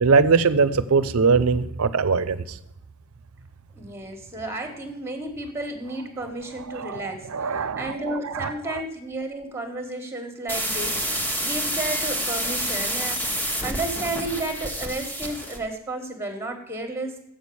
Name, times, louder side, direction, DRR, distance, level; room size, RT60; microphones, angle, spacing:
voice 1, 0.0-2.6 6.7-8.5, right 5 dB, 80° right, 15 dB, 0.6 m, -21 dB
voice 2, 3.7-17.2, right 2 dB, 10° right, 5 dB, 1.3 m, -32 dB
sound 1, 10.5-15.6, equal, 10° left, 1.0 m, -28 dB
7.7 x 6.4 x 6.8 m, 0.81 s
head